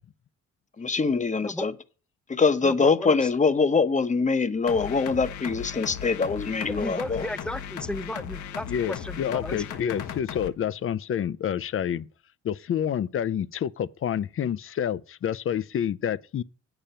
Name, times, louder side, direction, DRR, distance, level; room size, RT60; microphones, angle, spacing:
voice 1, 0.8-1.7 2.3-7.3, left 4 dB, 25° left, 0.9 m, -23 dB
voice 2, 2.6-3.3 6.7-9.6, left 1 dB, 5° left, 0.6 m, -34 dB
sound 1, 4.7-10.5, left 8 dB, 70° left, 1.2 m, -37 dB
voice 3, 8.7-12.1 12.4-16.4, left 9 dB, 45° left, 0.6 m, -28 dB
8.9 x 6.9 x 5.6 m
cardioid pair, 90°, 30 cm